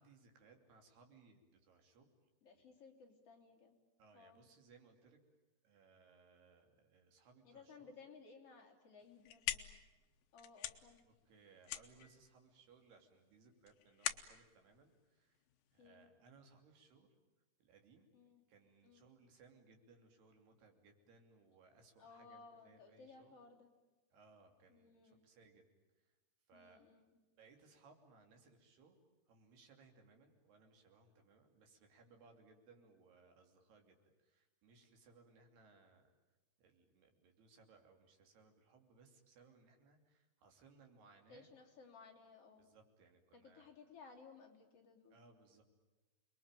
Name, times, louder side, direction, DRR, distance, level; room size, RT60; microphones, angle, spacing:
voice 1, 0.0-2.1 2.5-2.6 4.0-5.2 5.6-7.9 11.0-15.4 15.7-17.1 17.6-18.1 18.5-23.3 24.1-25.7 26.0-26.1 26.5-26.8 27.4-29.0 29.3-36.1 36.6-41.5 42.6-43.7 45.1-45.6, right 4 dB, 60° right, 4 dB, 4.8 m, -66 dB
voice 2, 2.4-3.8 4.1-4.4 7.4-9.8 10.3-11.0 15.8-16.1 18.1-18.4 18.8-19.1 22.0-23.7 24.7-25.2 26.5-27.2 41.3-42.7 43.3-45.2, left 4 dB, 35° left, 0 dB, 3.6 m, -60 dB
sound 1, 9.0-15.9, left 12 dB, 75° left, 2.2 m, -46 dB
29.0 x 21.5 x 9.0 m, 1.1 s
omnidirectional pair, 5.4 m